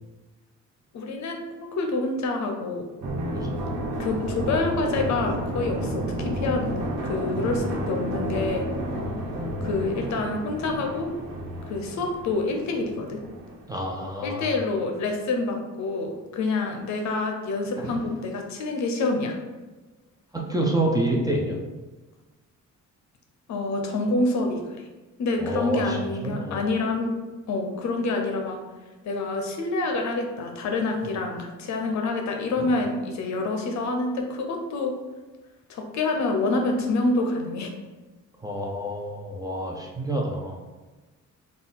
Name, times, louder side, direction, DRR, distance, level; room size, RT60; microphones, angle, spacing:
voice 1, 0.9-2.9 4.0-8.7 9.6-11.1 11.7-13.2 14.2-19.4 23.5-24.9 25.2-27.1 27.5-28.6 29.0-34.9 35.7-37.7, left 3 dB, 65° left, 3 dB, 0.7 m, -27 dB
sound 1, 3.0-14.4 14.8-14.9, right 1 dB, 75° right, 1.0 m, -31 dB
voice 2, 3.3-3.6 7.4-7.5 13.7-14.6 17.8-17.9 20.3-21.6 25.4-26.0 26.2-26.7 32.6-32.7 38.4-40.6, right 1 dB, 15° right, -1 dB, 0.4 m, -28 dB
3.8 x 2.3 x 3.9 m, 1.2 s
cardioid pair, 170°, 30 cm